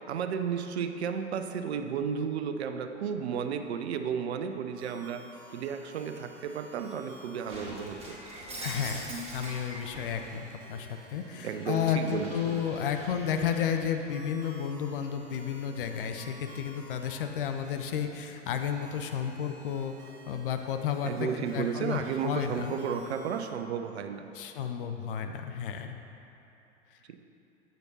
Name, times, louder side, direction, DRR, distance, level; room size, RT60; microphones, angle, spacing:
voice 1, 0.1-5.2 5.5-8.2 11.4-12.6 21.0-24.3 27.1-27.2, right 7 dB, 60° right, 8 dB, 0.5 m, -33 dB
sound 1, 4.8-23.5, equal, 40° right, 1.4 m, -53 dB
Shatter, 7.5-10.3 10.8-13.9, right 1 dB, 15° right, 1.5 m, -43 dB
voice 2, 8.6-22.7 24.3-25.9, left 8 dB, 50° left, 6 dB, 0.5 m, -32 dB
8.0 x 6.5 x 2.8 m, 3.0 s
figure-of-eight pair, 95°, 37 cm